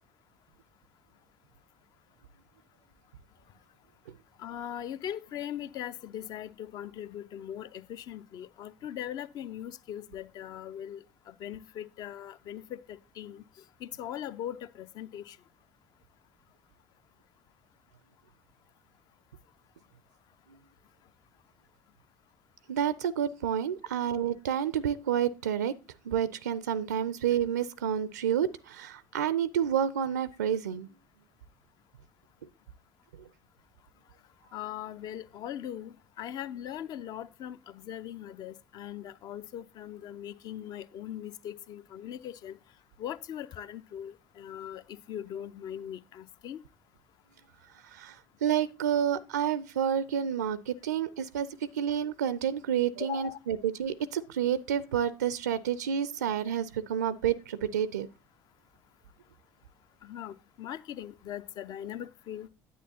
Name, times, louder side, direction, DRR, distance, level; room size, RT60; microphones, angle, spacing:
voice 1, 4.4-13.4 13.8-15.4 34.5-42.6 43.0-44.8 45.1-46.6 53.0-53.4 60.0-62.5, left 10 dB, 45° left, 0.5 m, -40 dB
voice 2, 22.7-25.7 26.1-30.9 47.8-58.1, right 9 dB, 75° right, 0.4 m, -29 dB
10.0 x 8.6 x 2.8 m
figure-of-eight pair, 60°, 9 cm